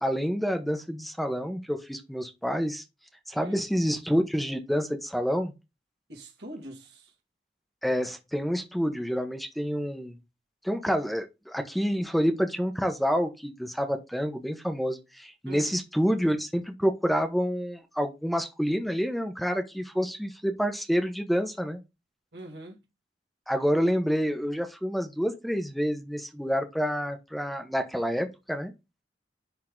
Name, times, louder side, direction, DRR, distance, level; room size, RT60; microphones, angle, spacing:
voice 1, 0.0-2.8 3.3-5.5 7.8-10.2 10.6-21.8 23.5-28.7, equal, ahead, 1.0 m, -28 dB
voice 2, 6.1-7.1 15.5-15.7 22.3-22.8, right 1 dB, 70° right, 2.2 m, -43 dB
10.5 x 3.8 x 3.8 m
head